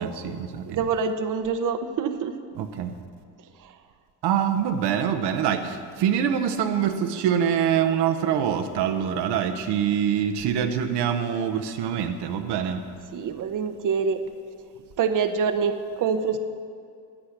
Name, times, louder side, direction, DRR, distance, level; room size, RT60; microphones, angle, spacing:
voice 1, 0.0-0.8 2.6-3.0 4.2-12.8, right 8 dB, 80° right, 6 dB, 0.9 m, -25 dB
voice 2, 0.7-2.3 3.6-3.7 13.1-14.2 15.0-16.4, right 6 dB, 50° right, 8 dB, 0.8 m, -25 dB
9.5 x 8.7 x 6.5 m, 2.2 s
supercardioid pair, 80°, 41 cm